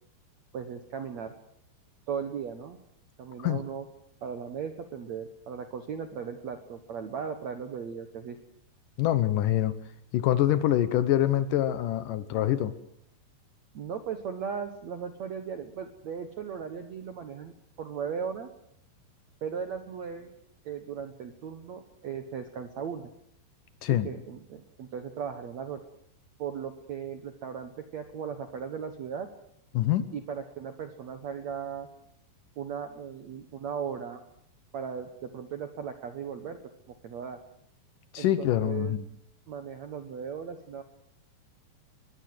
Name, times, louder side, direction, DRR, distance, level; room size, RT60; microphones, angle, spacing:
voice 1, 0.5-1.3 2.1-2.8 3.2-3.9 4.2-8.4 13.7-18.5 19.4-20.3 20.6-23.1 23.9-25.8 26.4-29.3 30.1-31.9 32.6-34.2 34.7-36.6 36.9-37.4 38.2-39.0 39.5-40.8, right 7 dB, 85° right, 8 dB, 1.5 m, -37 dB
voice 2, 9.0-9.8 10.1-12.7 23.8-24.1 29.7-30.1 38.1-39.0, left 12 dB, 80° left, 13 dB, 1.9 m, -25 dB
23.0 x 20.5 x 7.8 m, 0.70 s
omnidirectional pair, 5.3 m